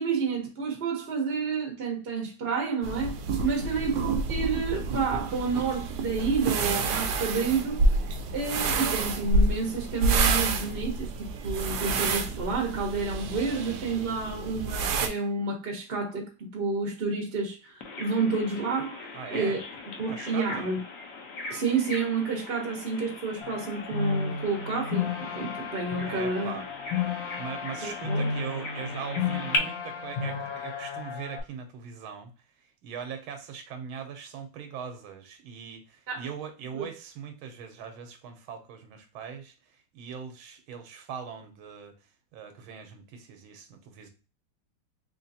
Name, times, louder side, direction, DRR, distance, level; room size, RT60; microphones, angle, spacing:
voice 1, 0.0-3.2 3.4-7.8 8.3-19.6 20.0-20.8 21.5-26.6 27.8-28.3 36.1-36.2 36.7-36.8, right 4 dB, 50° right, 0.7 m, -30 dB
sound 1, 2.8-15.1, right 3 dB, 70° right, 1.1 m, -28 dB
voice 2, 3.5-3.9 19.1-19.6 20.1-20.7 26.1-26.7 27.4-32.3 32.6-41.9 42.3-44.1, right 7 dB, 85° right, 1.6 m, -40 dB
Bird vocalization bird call bird song, 17.8-29.6, left 3 dB, 55° left, 1.0 m, -39 dB
sound 2, 23.4-31.4, left 5 dB, 75° left, 1.6 m, -33 dB
3.6 x 3.2 x 2.7 m
omnidirectional pair, 2.2 m